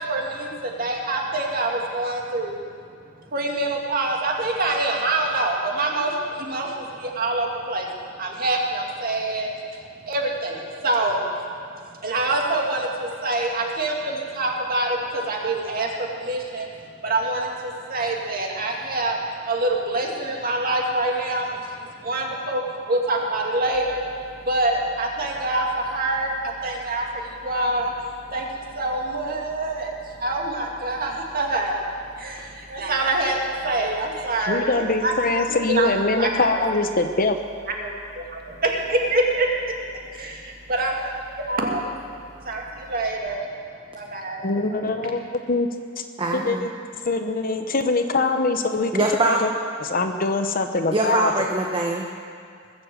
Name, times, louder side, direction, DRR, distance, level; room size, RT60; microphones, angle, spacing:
voice 1, 0.0-2.6 3.3-7.9 8.2-9.5 10.0-11.2 12.0-16.7 17.0-19.2 19.5-24.0 24.4-27.9 28.3-29.9 30.2-31.8 32.2-35.1 35.5-35.9 36.2-36.3 37.8-39.5 40.2-40.3 40.7-41.9 42.4-43.5 43.9-44.9, right 2 dB, 45° right, 0 dB, 2.1 m, -25 dB
sound 1, 23.7-43.1, left 1 dB, 15° left, 1.6 m, -50 dB
voice 2, 34.5-37.4 44.4-45.2 45.5-45.7 46.0-46.1 46.3-46.7 47.0-48.9 49.2-49.5 49.8-51.3, left 3 dB, 45° left, 7 dB, 0.9 m, -23 dB
voice 3, 46.2-46.7 48.9-49.4 50.9-52.1, right 2 dB, 25° right, 0 dB, 0.9 m, -23 dB
20.5 x 7.6 x 7.6 m, 2.3 s
head